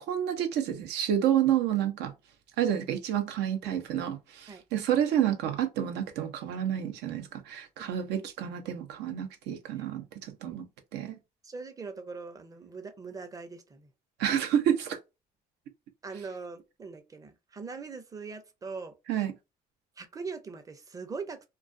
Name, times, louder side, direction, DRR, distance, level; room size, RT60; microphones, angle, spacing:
voice 1, 0.0-2.1 2.6-10.7 10.9-11.2 14.2-15.0 19.1-19.3, right 10 dB, 85° right, 0.6 m, -29 dB
voice 2, 11.4-13.9 16.0-19.2 20.0-21.5, right 4 dB, 20° right, 0.5 m, -41 dB
2.3 x 2.3 x 2.5 m
cardioid pair, 110°, 17 cm